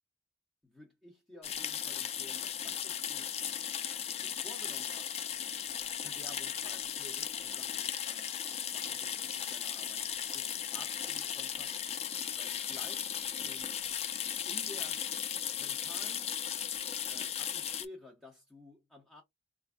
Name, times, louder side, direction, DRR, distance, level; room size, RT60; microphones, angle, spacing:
voice 1, 0.6-3.3 3.8-5.1 6.0-8.4 8.7-10.1 10.3-12.0 12.3-13.1 13.4-13.7 14.5-15.1 15.6-16.3 17.1-19.2, left 1 dB, ahead, 0.7 m, -53 dB
sound 1, 1.4-17.9, left 9 dB, 35° left, 0.3 m, -36 dB
4.4 x 2.5 x 2.3 m
head